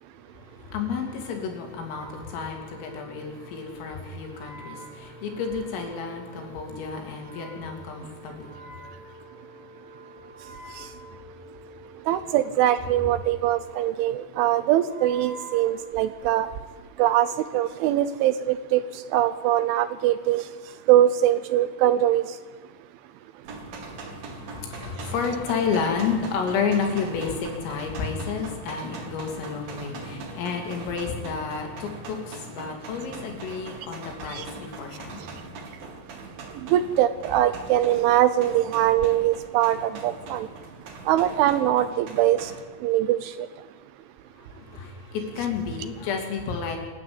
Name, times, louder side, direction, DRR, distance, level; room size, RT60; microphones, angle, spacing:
voice 1, 0.6-8.6 12.1-12.2 24.1-35.4 44.4-46.8, left 5 dB, 75° left, 3 dB, 5.7 m, -31 dB
Wind instrument woodwind instrument, 1.8-16.5, right 1 dB, 45° left, 5.5 m, -47 dB
voice 2, 12.1-16.5 17.0-18.8 19.1-20.4 20.9-22.3 34.3-34.5 36.7-40.5 41.1-42.5 42.8-43.5, right 12 dB, 80° right, 13 dB, 3.0 m, -22 dB
sound 1, 23.4-42.6, right 3 dB, 50° right, 3.8 m, -41 dB
27.5 x 12.0 x 8.9 m, 1.4 s
omnidirectional pair, 6.0 m